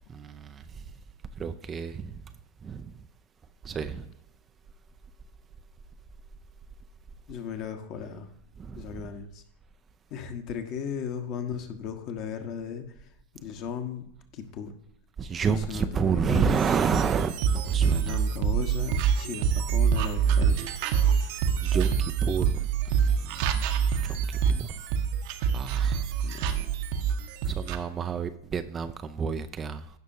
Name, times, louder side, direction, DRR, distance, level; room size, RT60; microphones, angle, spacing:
voice 1, 0.1-0.8 1.4-2.2 2.6-2.9 3.6-4.1 8.6-9.0 15.2-18.2 21.3-23.5 24.0-24.7 25.5-26.0 27.4-29.9, right 6 dB, 20° right, 0.5 m, -30 dB
voice 2, 7.3-8.3 8.8-9.4 10.1-13.1 13.4-14.7 15.5-16.7 17.8-20.7 26.2-26.7, left 7 dB, 40° left, 1.3 m, -36 dB
sound 1, 16.3-27.8, right 7 dB, 45° right, 0.9 m, -26 dB
16.5 x 6.2 x 2.7 m
figure-of-eight pair, 90°, 0 cm